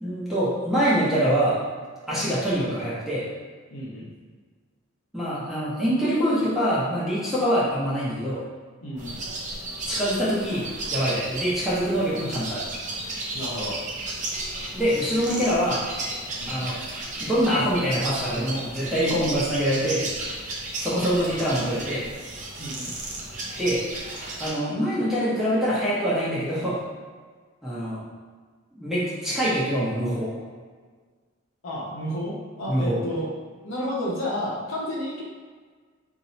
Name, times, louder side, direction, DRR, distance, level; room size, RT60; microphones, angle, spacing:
voice 1, 0.0-1.6 2.1-3.2 5.1-8.4 9.8-12.6 14.7-15.8 16.5-16.8 17.2-20.1 20.8-22.1 23.6-23.8 24.4-26.8 27.6-28.0 28.7-30.3 32.7-33.0, equal, ahead, -10 dB, 0.8 m, -24 dB
voice 2, 3.7-4.1 8.8-9.2 13.3-13.8 16.4-16.7 22.6-22.9 31.6-33.3 33.6-35.2, equal, 70° left, -5 dB, 0.9 m, -31 dB
sound 1, 9.0-24.5, right 2 dB, 35° right, 0.6 m, -34 dB
2.7 x 2.7 x 4.2 m, 1.5 s
head